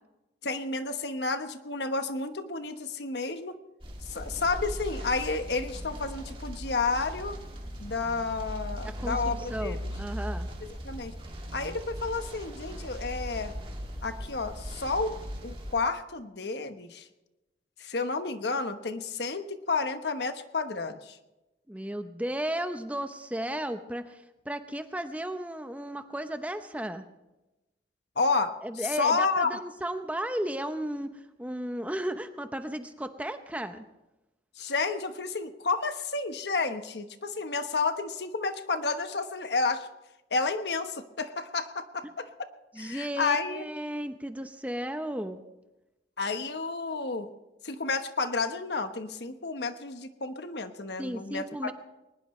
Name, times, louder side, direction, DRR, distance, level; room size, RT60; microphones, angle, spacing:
voice 1, 0.4-3.6 4.0-7.4 7.8-9.9 10.8-11.1 11.5-13.5 14.0-15.1 15.4-17.1 17.8-21.2 28.2-28.5 28.9-29.5 34.6-39.9 40.3-42.3 42.8-43.6 46.2-47.3 47.6-51.7, left 4 dB, 70° left, 9 dB, 1.2 m, -31 dB
sound 1, 3.8-15.7, equal, 30° right, 2.5 m, -38 dB
voice 2, 8.8-10.5 21.7-27.0 28.6-33.9 42.7-45.4 51.0-51.7, right 1 dB, 10° right, 8 dB, 0.8 m, -34 dB
21.5 x 20.0 x 3.2 m, 1.0 s
head